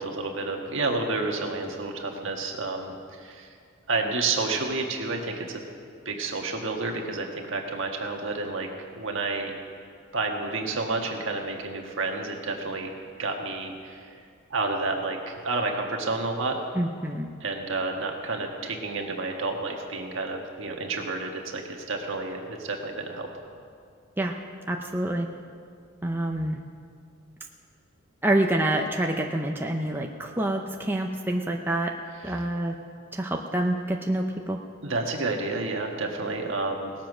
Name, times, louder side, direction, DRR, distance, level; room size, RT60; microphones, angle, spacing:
voice 1, 0.0-3.5 3.9-5.6 6.0-8.7 8.9-9.5 10.1-12.9 13.2-14.2 14.5-16.6 17.4-23.3 32.2-32.3 34.8-36.9, right 3 dB, 60° right, 2 dB, 1.5 m, -30 dB
voice 2, 16.8-17.3 24.2-24.3 24.7-25.3 26.0-26.6 28.2-31.9 32.2-32.7 33.1-34.6, right 1 dB, 10° right, 1 dB, 0.6 m, -27 dB
18.5 x 7.4 x 6.1 m, 2.2 s
head